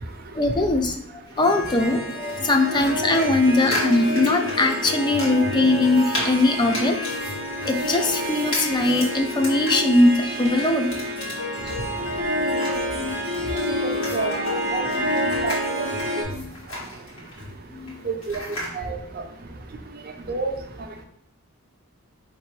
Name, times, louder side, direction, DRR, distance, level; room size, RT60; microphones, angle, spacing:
voice 1, 0.3-1.0 1.4-7.0 7.7-10.9 11.7-11.8 12.5-13.1 13.5-13.7 14.9-15.4 16.3-16.5 17.7-17.9, left 2 dB, 20° left, 6 dB, 0.4 m, -21 dB
sound 1, 1.3-18.8, left 1 dB, 60° left, 1.8 m, -36 dB
Harp, 1.4-16.2, left 1 dB, 45° left, 1.9 m, -28 dB
voice 2, 13.8-14.8 15.4-15.6 18.0-18.5 18.7-19.0 20.3-20.5, right 3 dB, 45° right, 4 dB, 0.6 m, -28 dB
4.9 x 3.3 x 3.1 m, 0.72 s
head